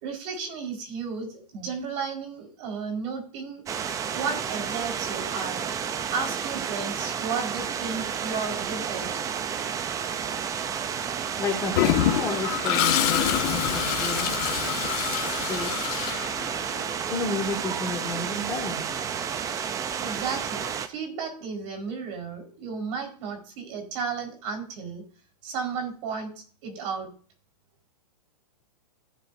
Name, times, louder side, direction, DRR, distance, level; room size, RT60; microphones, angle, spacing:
voice 1, 0.0-3.6 4.1-5.7 6.1-9.1 20.0-25.0 25.4-26.3 26.6-27.1, right 5 dB, 45° right, 2 dB, 4.8 m, -33 dB
sound 1, 3.7-20.9, right 7 dB, 15° right, 0.6 m, -31 dB
voice 2, 11.4-14.3 15.4-15.8 17.1-18.8, left 3 dB, 15° left, 0 dB, 2.3 m, -31 dB
Toilet flush, 11.7-16.8, left 12 dB, 40° left, 1.5 m, -26 dB
16.0 x 7.7 x 2.7 m, 0.42 s
hypercardioid pair, 140°, 20 cm